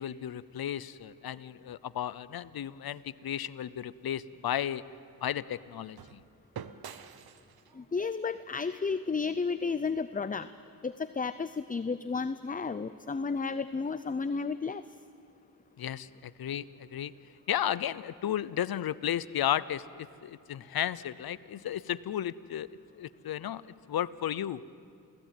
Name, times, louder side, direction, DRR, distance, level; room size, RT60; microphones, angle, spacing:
voice 1, 0.0-4.8 5.2-6.2 15.8-17.1 17.5-22.7 23.0-23.6 23.9-24.6, left 10 dB, 75° left, 17 dB, 0.8 m, -34 dB
sound 1, 3.8-9.9, right 8 dB, 80° right, 1.1 m, -50 dB
voice 2, 7.7-10.5 10.8-14.8, left 4 dB, 20° left, 13 dB, 0.6 m, -32 dB
28.5 x 16.5 x 9.2 m, 2.3 s
cardioid pair, 85°, 37 cm